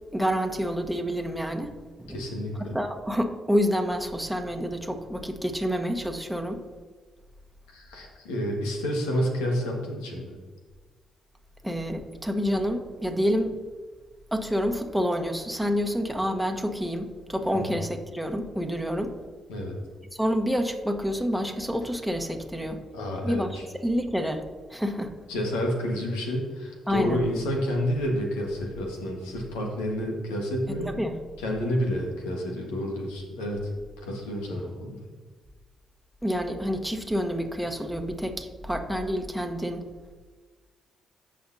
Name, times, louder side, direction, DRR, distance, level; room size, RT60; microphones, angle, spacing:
voice 1, 0.1-1.7 2.0-2.2 2.6-6.6 11.6-13.5 14.3-19.1 20.1-22.8 23.2-24.4 24.7-25.1 26.9-27.2 30.8-31.1 36.2-39.9, equal, ahead, 4 dB, 1.3 m, -28 dB
voice 2, 2.1-2.7 7.7-10.3 17.5-17.8 19.5-19.8 22.9-23.6 25.3-30.9 31.4-33.7 34.0-35.1, equal, 90° left, 0 dB, 1.6 m, -29 dB
15.0 x 5.2 x 2.8 m, 1.4 s
hypercardioid pair, 45°, 0 cm